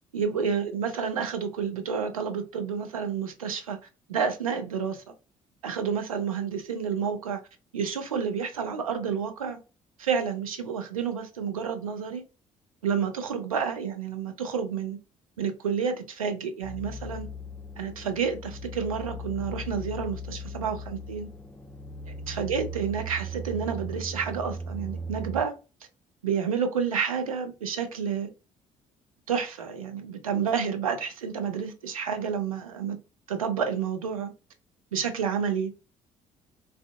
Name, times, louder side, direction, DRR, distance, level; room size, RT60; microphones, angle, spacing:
voice 1, 0.1-3.8 4.1-5.0 5.6-7.4 7.7-9.6 10.0-12.2 12.8-15.0 15.4-17.3 17.8-21.3 22.1-25.5 26.2-28.3 29.3-33.0 33.3-34.3 34.9-35.7, right 6 dB, 85° right, 0.4 m, -30 dB
sound 1, 16.6-25.4, right 1 dB, 10° left, 0.4 m, -38 dB
2.4 x 2.3 x 2.3 m
figure-of-eight pair, 50°, 17 cm